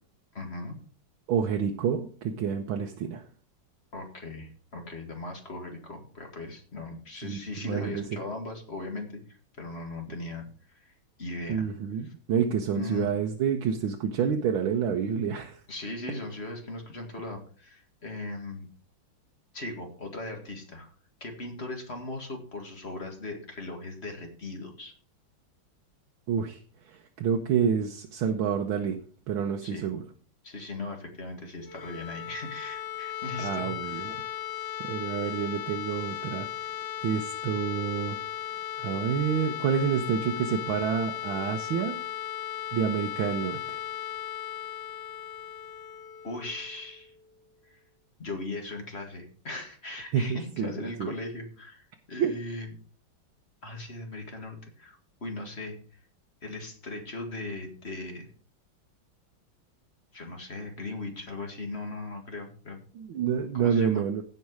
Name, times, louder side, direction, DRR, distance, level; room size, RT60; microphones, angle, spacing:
voice 1, 0.3-0.8 3.9-10.9 11.2-11.6 12.0-12.1 12.7-13.1 15.7-18.7 19.5-20.9 21.2-24.9 29.6-29.9 30.4-34.1 46.2-47.1 47.6-47.8 48.2-52.7 53.6-55.8 56.4-58.3 60.1-62.8 63.5-64.0, left 2 dB, 35° left, 3 dB, 2.0 m, -38 dB
voice 2, 1.3-3.2 7.2-7.4 7.7-8.0 11.5-15.6 26.3-26.6 26.9-29.0 29.3-30.0 33.4-34.2 34.8-36.5 37.0-38.2 38.8-42.0 42.7-43.8 50.1-50.7 51.0-51.1 52.2-52.3 63.0-64.2, right 7 dB, 80° right, 3 dB, 1.7 m, -28 dB
sound 1, 31.5-47.3, left 11 dB, 65° left, 2.0 m, -37 dB
16.0 x 5.4 x 4.7 m, 0.42 s
omnidirectional pair, 2.2 m